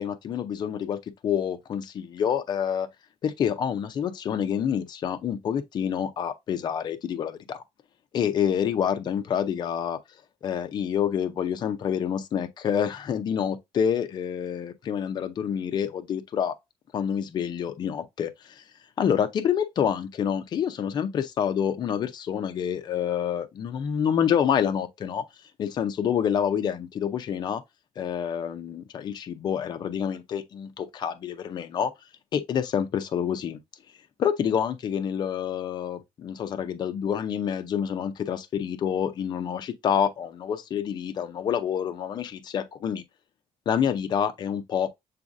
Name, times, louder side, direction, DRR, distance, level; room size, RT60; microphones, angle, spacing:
voice 1, 0.0-2.9 3.2-7.6 8.1-10.0 10.4-16.5 16.9-18.6 19.0-25.2 25.6-27.6 28.0-31.9 32.3-33.6 34.2-43.0 43.7-44.9, left 8 dB, 35° left, 0.5 m, -27 dB
7.0 x 2.5 x 2.5 m
cardioid pair, 170°, 12 cm